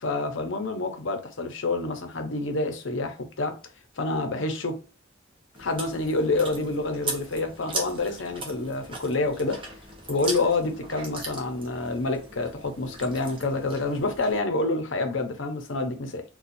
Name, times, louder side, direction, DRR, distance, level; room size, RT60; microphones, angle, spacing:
voice 1, 0.0-3.6 4.0-4.8 5.6-9.6 10.1-16.2, left 2 dB, 65° left, 0.7 m, -28 dB
Chewing mastication, 5.5-14.4, right 3 dB, 25° right, 0.8 m, -39 dB
4.2 x 2.3 x 2.6 m
head